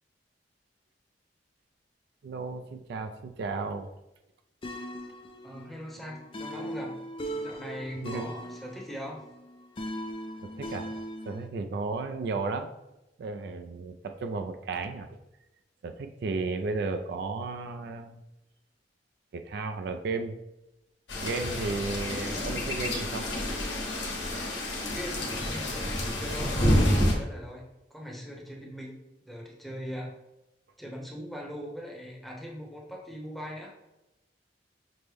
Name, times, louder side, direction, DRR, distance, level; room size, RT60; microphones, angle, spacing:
voice 1, 2.2-3.9 8.0-8.3 10.6-10.9 11.3-12.7 13.2-15.1 15.8-18.2 19.3-20.4 21.2-23.3, right 3 dB, 65° right, 7 dB, 0.3 m, -34 dB
sound 1, 4.6-11.5, equal, 30° left, 0.4 m, -39 dB
voice 2, 5.4-7.0 7.3-9.2 24.9-27.6 27.9-29.0 29.3-30.1 30.8-33.7, equal, ahead, -2 dB, 0.8 m, -40 dB
sound 2, 21.1-27.1, left 1 dB, 75° left, 1.2 m, -28 dB
6.0 x 2.1 x 3.3 m, 0.93 s
head